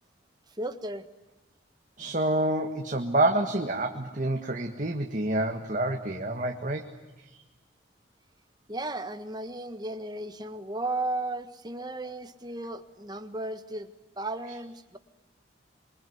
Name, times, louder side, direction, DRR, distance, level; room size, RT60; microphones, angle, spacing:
voice 1, 0.6-1.0 8.7-15.0, right 2 dB, 20° right, 9 dB, 1.5 m, -35 dB
voice 2, 2.0-6.9, right 2 dB, 40° right, 3 dB, 1.8 m, -28 dB
26.5 x 23.5 x 9.5 m, 1.0 s
head